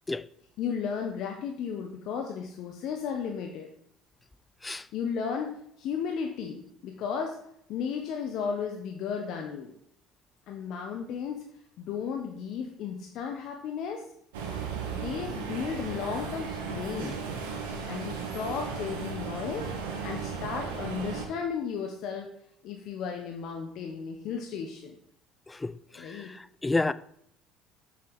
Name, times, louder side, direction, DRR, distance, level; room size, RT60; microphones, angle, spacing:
voice 1, 0.6-3.7 4.9-7.4 7.7-9.7 10.5-11.4 11.8-14.1 14.9-17.2 17.9-19.7 20.0-22.3 22.6-24.9 25.9-26.3, left 6 dB, 65° left, 1.0 m, -34 dB
sound 1, 14.3-21.3, right 5 dB, 85° right, 1.7 m, -35 dB
voice 2, 26.6-26.9, left 3 dB, 15° left, 0.5 m, -28 dB
7.2 x 6.1 x 4.7 m
hypercardioid pair, 70°, 0 cm